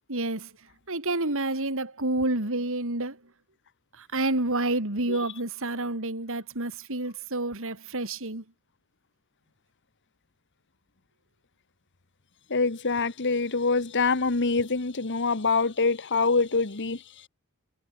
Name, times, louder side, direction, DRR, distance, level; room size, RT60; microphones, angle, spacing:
voice 1, 0.1-0.5 0.9-3.2 3.9-8.4, right 2 dB, 65° right, 3.8 m, -29 dB
voice 2, 12.5-17.0, left 4 dB, 55° left, 1.5 m, -25 dB
head